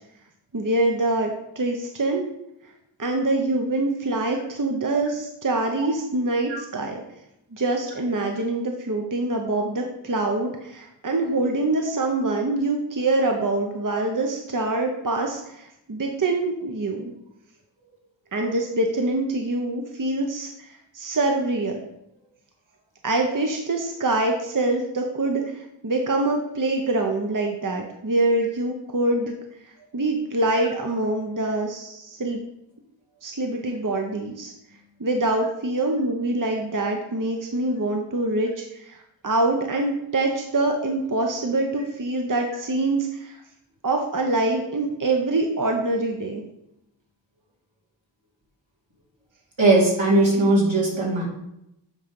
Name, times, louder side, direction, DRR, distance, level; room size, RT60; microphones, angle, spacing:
voice 1, 0.5-2.2 3.0-7.0 7.5-17.1 18.3-21.8 23.0-29.4 29.9-32.4 33.2-34.5 35.0-43.4 43.8-46.4, right 2 dB, 45° right, 2 dB, 0.9 m, -25 dB
voice 2, 49.6-51.2, right 2 dB, 80° right, -4 dB, 2.6 m, -19 dB
8.5 x 3.8 x 5.3 m, 0.84 s
wide cardioid pair, 45°, 45 cm